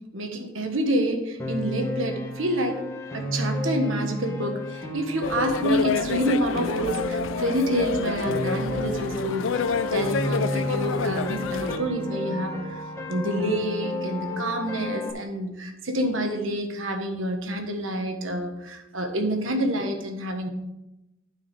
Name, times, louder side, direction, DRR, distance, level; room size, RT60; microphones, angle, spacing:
voice 1, 0.1-2.8 3.1-12.8 13.1-20.5, right 1 dB, 75° right, 4 dB, 1.4 m, -28 dB
Piano, 1.4-15.1, left 1 dB, 15° left, 1.5 m, -32 dB
sound 1, 5.2-11.8, left 5 dB, 70° left, 0.4 m, -28 dB
9.2 x 4.9 x 6.8 m, 0.95 s
head